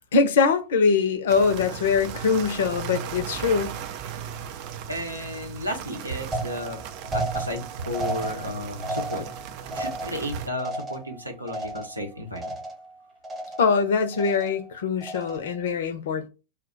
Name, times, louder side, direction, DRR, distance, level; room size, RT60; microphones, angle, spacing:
voice 1, 0.1-3.8 13.6-16.3, left 5 dB, 60° left, 0.5 m, -23 dB
sound 1, 1.3-10.5, right 8 dB, 45° right, 0.3 m, -37 dB
voice 2, 4.9-6.8 7.1-9.3 9.7-12.6, equal, 85° right, 0.7 m, -33 dB
sound 2, 6.3-12.1 12.4-12.9 13.2-13.8 14.1-14.6 15.0-15.6, right 2 dB, 20° right, 0.9 m, -33 dB
2.2 x 2.1 x 3.7 m
figure-of-eight pair, 90°, 0 cm